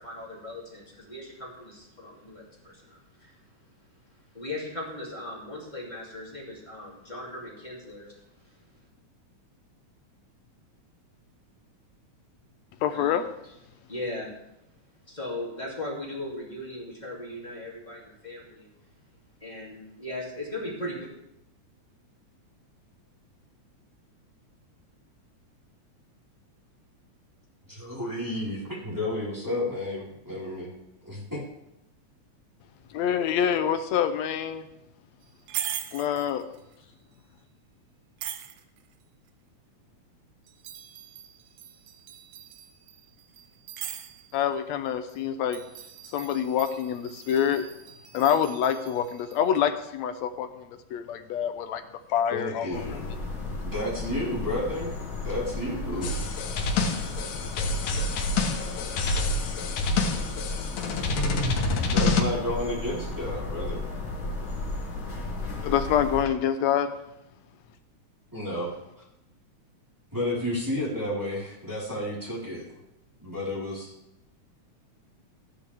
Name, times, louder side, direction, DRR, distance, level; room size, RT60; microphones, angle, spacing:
voice 1, 0.0-3.4 4.3-8.1 8.4-8.5 12.9-13.2 13.9-14.3 15.1-18.7 19.4-21.1, left 1 dB, 15° left, -4 dB, 2.6 m, -38 dB
voice 2, 12.8-13.3 32.9-34.7 35.9-36.4 44.3-45.6 46.1-47.7 48.1-50.7 50.9-51.8 52.1-52.8 65.6-66.9, left 9 dB, 75° left, 9 dB, 1.9 m, -26 dB
voice 3, 27.7-30.7 31.0-31.4 52.3-53.1 53.6-56.2 61.8-63.9 68.3-68.7 69.0-69.1 70.1-72.7 73.2-73.9, left 1 dB, 5° right, -8 dB, 4.0 m, -31 dB
sound 1, 35.2-36.7 38.2-38.9 40.5-44.5 44.9-45.2 45.5-49.6, right 10 dB, 80° right, 2.1 m, -41 dB
sound 2, 52.7-66.2, left 3 dB, 45° left, 2.6 m, -34 dB
sound 3, 56.0-62.2, left 3 dB, 90° left, 2.7 m, -27 dB
14.5 x 10.0 x 3.5 m, 0.84 s
omnidirectional pair, 3.5 m